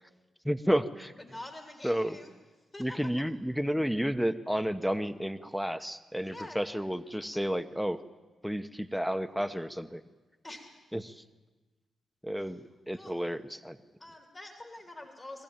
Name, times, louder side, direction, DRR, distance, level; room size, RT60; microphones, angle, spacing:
voice 1, 0.4-1.1 1.8-2.2 2.8-8.0 8.4-10.0 10.9-11.1 12.2-12.6 12.9-13.8, equal, ahead, 10 dB, 1.0 m, -31 dB
voice 2, 1.2-2.3 2.7-3.0 6.2-6.6 10.4-10.7 12.4-12.6 12.9-13.1 14.0-15.4, left 2 dB, 35° left, 2 dB, 3.1 m, -46 dB
24.0 x 15.0 x 8.9 m, 1.2 s
supercardioid pair, 55°, 0 cm